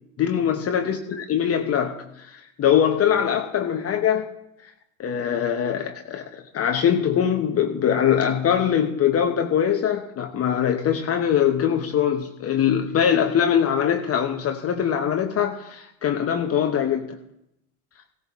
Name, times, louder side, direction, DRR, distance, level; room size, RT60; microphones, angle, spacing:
voice 1, 0.2-4.3 5.0-17.2, left 9 dB, 35° left, 5 dB, 1.0 m, -22 dB
16.5 x 13.5 x 3.6 m, 0.82 s
hypercardioid pair, 85°, 43 cm